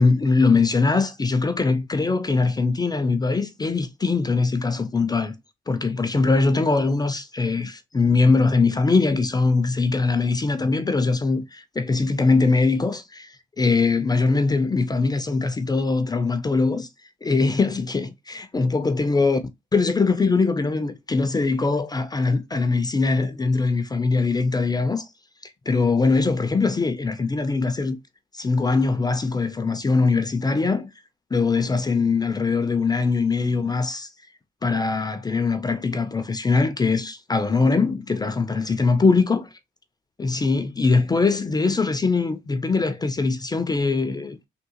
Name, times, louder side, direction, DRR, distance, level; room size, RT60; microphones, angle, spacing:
voice 1, 0.0-5.3 5.7-16.9 17.2-19.4 19.7-25.1 25.7-28.0 28.3-30.9 31.3-34.1 34.6-39.4 40.2-44.4, left 4 dB, 20° left, 0.4 m, -22 dB
3.6 x 2.3 x 2.8 m
cardioid pair, 90°, 20 cm